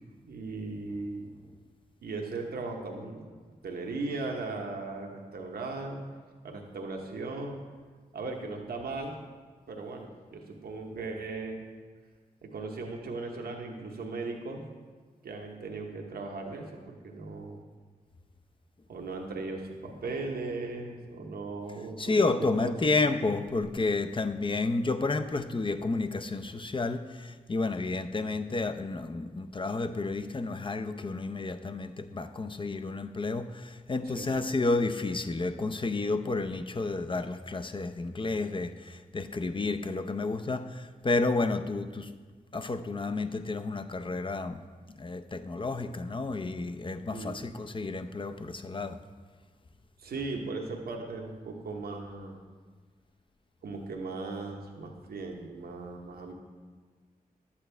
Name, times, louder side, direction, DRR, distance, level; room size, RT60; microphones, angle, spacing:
voice 1, 0.2-1.3 2.0-3.3 3.6-6.0 6.4-7.6 8.1-9.1 9.7-11.7 12.4-14.6 15.2-17.6 18.9-22.7 34.1-34.3 47.1-47.5 50.0-52.4 53.6-56.3, right 3 dB, 90° right, 1 dB, 0.9 m, -37 dB
voice 2, 22.0-42.1 42.5-44.7 44.9-49.0, left 3 dB, 35° left, 8 dB, 0.6 m, -31 dB
11.0 x 8.5 x 3.3 m, 1.5 s
cardioid pair, 45°, 16 cm